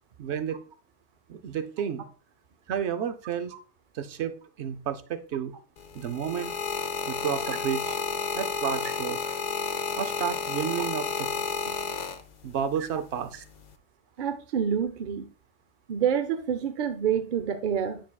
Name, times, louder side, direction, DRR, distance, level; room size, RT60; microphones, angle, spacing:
voice 1, 0.2-0.6 1.3-2.1 2.7-3.5 3.9-5.5 5.9-6.5 7.1-8.0 8.3-9.2 10.0-11.3 12.4-13.4, right 8 dB, 80° right, 0.9 m, -31 dB
sound 1, 5.8-12.6 13.4-13.7, left 6 dB, 50° left, 0.6 m, -31 dB
voice 2, 14.2-15.3 15.9-18.0, right 8 dB, 55° right, 0.6 m, -27 dB
9.1 x 5.9 x 2.3 m
omnidirectional pair, 1.1 m